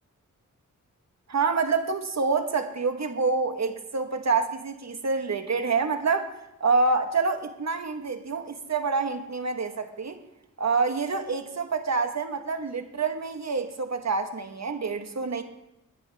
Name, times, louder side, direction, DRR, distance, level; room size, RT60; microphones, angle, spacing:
voice 1, 1.3-6.3 6.6-10.2 10.6-15.4, right 4 dB, 55° right, 7 dB, 1.5 m, -27 dB
21.0 x 9.7 x 3.5 m, 0.88 s
cardioid pair, 55°, 32 cm